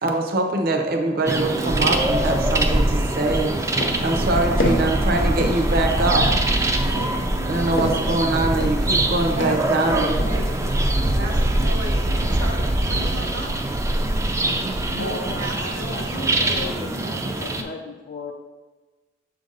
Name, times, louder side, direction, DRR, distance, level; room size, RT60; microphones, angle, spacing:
voice 1, 0.0-3.5 4.0-6.2 7.4-10.2, right 2 dB, 55° right, 3 dB, 0.6 m, -23 dB
sound 1, 1.3-17.6, right 1 dB, 15° right, 0.4 m, -23 dB
sound 2, 3.3-3.4 3.8-4.2 4.6-5.0 5.4-5.8 6.2-6.5 7.0-8.2 8.6-9.1 9.4-9.7 10.2-10.6, left 1 dB, 85° left, 0.7 m, -28 dB
voice 2, 9.4-10.4 11.1-13.5 15.0-16.6, right 1 dB, 90° right, -1 dB, 0.8 m, -34 dB
voice 3, 14.9-18.3, left 4 dB, 50° left, 1 dB, 0.4 m, -36 dB
7.0 x 2.6 x 5.3 m, 1.3 s
head